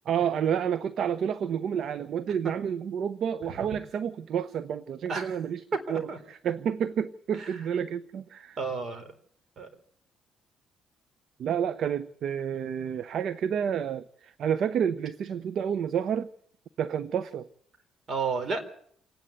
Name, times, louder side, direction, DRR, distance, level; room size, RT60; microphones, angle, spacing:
voice 1, 0.1-5.6 5.9-8.6 11.4-16.3 16.8-17.5, right 8 dB, 65° right, 15 dB, 0.8 m, -29 dB
voice 2, 5.9-6.2 7.4-7.6 8.6-9.1 9.6-9.7 18.1-18.6, right 4 dB, 50° right, 9 dB, 4.0 m, -32 dB
27.0 x 10.0 x 9.5 m, 0.63 s
cardioid pair, 85°, 0 cm